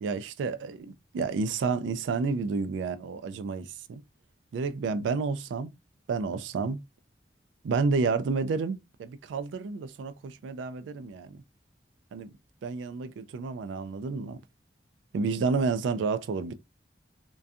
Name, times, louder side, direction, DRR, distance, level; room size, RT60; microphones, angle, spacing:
voice 1, 0.0-4.0 4.5-5.7 6.1-6.8 7.6-11.4 12.1-12.3 12.6-14.4 15.1-16.5, right 4 dB, 85° right, 0.3 m, -30 dB
2.6 x 2.2 x 2.3 m
head